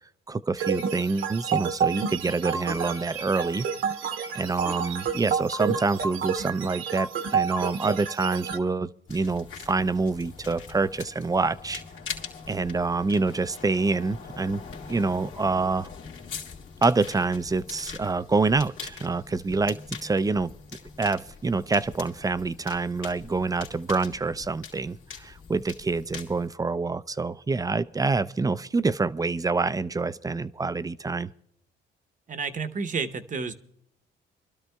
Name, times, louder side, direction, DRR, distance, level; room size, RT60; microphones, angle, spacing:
voice 1, 0.3-3.7 4.3-11.8 12.5-14.6 14.9-15.9 16.8-20.5 21.0-31.3, right 3 dB, 20° right, 0.4 m, -26 dB
sound 1, 0.6-8.6, right 6 dB, 70° right, 1.2 m, -29 dB
sound 2, 9.1-26.5, left 6 dB, 75° left, 2.1 m, -42 dB
voice 2, 32.3-33.5, right 5 dB, 40° right, 0.9 m, -30 dB
28.5 x 12.5 x 2.3 m
cardioid pair, 90°, 20 cm